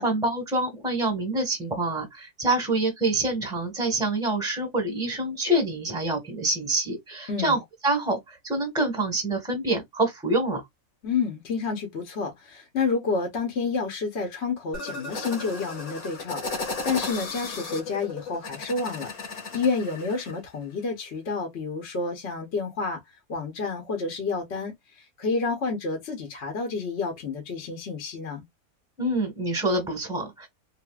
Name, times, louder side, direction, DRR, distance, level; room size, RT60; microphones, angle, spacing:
voice 1, 0.0-10.6 29.0-30.5, right 2 dB, 5° right, 1.2 m, -26 dB
voice 2, 7.3-7.6 11.0-19.1 19.5-23.0 23.3-28.4, left 4 dB, 50° left, 1.1 m, -29 dB
sound 1, 14.7-20.3, left 3 dB, 70° left, 1.5 m, -35 dB
3.3 x 2.6 x 2.4 m
omnidirectional pair, 1.6 m